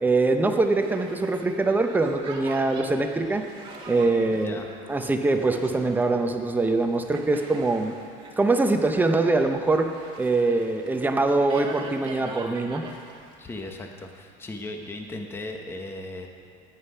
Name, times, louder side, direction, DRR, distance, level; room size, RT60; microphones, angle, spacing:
voice 1, 0.0-3.4 3.9-4.6 4.9-7.9 8.4-9.9 10.2-12.8, right 3 dB, 10° right, 5 dB, 0.7 m, -23 dB
Boat Water vehicle, 0.5-13.7, right 2 dB, 30° right, 1.9 m, -42 dB
voice 2, 4.3-4.7 13.4-16.3, left 2 dB, 15° left, 3 dB, 1.0 m, -37 dB
13.0 x 10.0 x 5.6 m, 2.2 s
cardioid pair, 145°, 17 cm